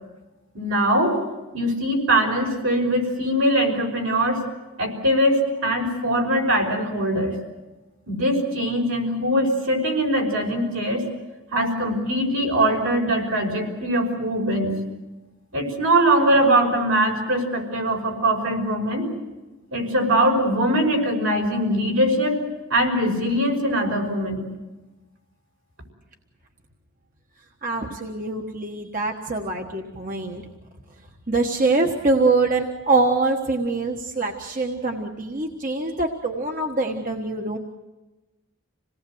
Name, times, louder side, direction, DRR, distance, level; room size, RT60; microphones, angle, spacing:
voice 1, 0.5-1.2 1.5-4.4 4.8-7.3 8.1-11.0 11.5-14.8 15.5-19.1 19.7-22.4 22.7-24.4, right 1 dB, 75° right, 2 dB, 5.7 m, -22 dB
voice 2, 27.6-30.4 31.3-37.6, right 3 dB, 40° right, 2 dB, 1.4 m, -24 dB
27.5 x 18.5 x 7.9 m, 1.1 s
head